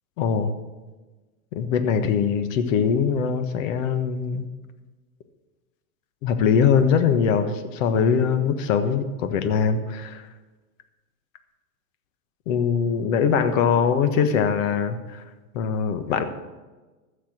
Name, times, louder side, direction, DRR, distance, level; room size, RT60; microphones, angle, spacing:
voice 1, 0.2-0.5 1.5-4.5 6.2-10.3 12.5-15.2 15.5-16.2, left 6 dB, 65° left, 9 dB, 1.4 m, -22 dB
14.5 x 7.5 x 6.1 m, 1.2 s
hypercardioid pair, 105°, 41 cm